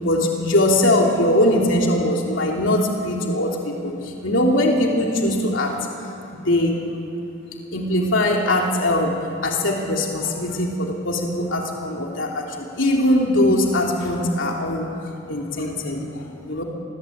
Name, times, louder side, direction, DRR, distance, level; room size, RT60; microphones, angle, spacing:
voice 1, 0.0-5.7 6.3-6.8 7.7-9.1 9.4-14.9 15.3-16.0 16.5-16.6, left 1 dB, 65° left, 0 dB, 3.3 m, -21 dB
27.0 x 21.5 x 8.8 m, 2.8 s
head